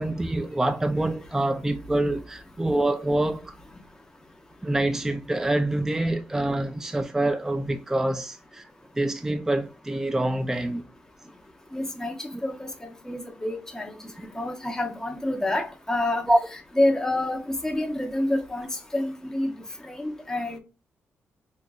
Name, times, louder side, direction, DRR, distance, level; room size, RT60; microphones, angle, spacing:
voice 1, 0.0-3.5 4.6-8.7 8.9-10.8 12.3-12.4 16.3-16.4, right 1 dB, 10° right, 0.3 m, -26 dB
voice 2, 11.7-12.7 13.1-13.9 14.3-16.2 16.7-19.5 19.9-20.6, left 1 dB, 10° left, 0.9 m, -27 dB
4.5 x 2.5 x 2.3 m
cardioid pair, 95°, 5 cm